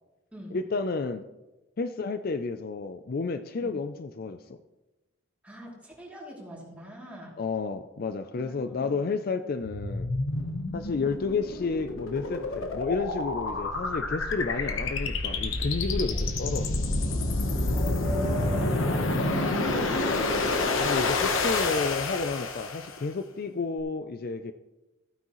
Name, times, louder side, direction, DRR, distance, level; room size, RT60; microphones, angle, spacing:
voice 1, 0.5-1.2 1.8-4.4 7.4-10.1 10.7-17.0 20.8-24.5, left 4 dB, 45° left, 10 dB, 0.4 m, -31 dB
voice 2, 5.4-7.4 8.4-8.9 9.3-9.4 16.1-16.2 17.7-19.9, left 1 dB, 5° right, -4 dB, 2.8 m, -40 dB
sound 1, 9.6-23.0, left 2 dB, 75° left, 1.1 m, -28 dB
15.0 x 9.3 x 3.1 m, 1.1 s
head